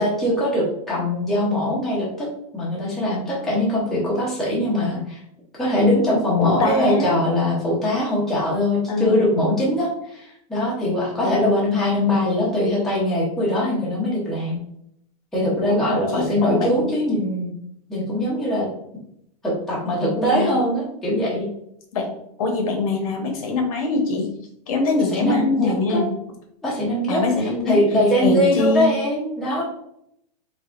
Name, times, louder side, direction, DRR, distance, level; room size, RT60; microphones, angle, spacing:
voice 1, 0.0-2.3 2.5-5.2 5.6-14.6 15.3-17.5 17.9-18.7 19.4-21.4 25.1-26.0 26.6-29.6, left 1 dB, ahead, -7 dB, 0.6 m, -22 dB
voice 2, 6.4-7.1 8.9-9.3 11.2-11.5 15.7-16.9 20.1-20.5 21.9-22.1 22.4-24.3 24.7-26.1 27.1-27.8 28.2-28.9, left 3 dB, 60° left, 3 dB, 0.9 m, -23 dB
3.6 x 3.5 x 2.4 m, 0.75 s
supercardioid pair, 170°, 20 cm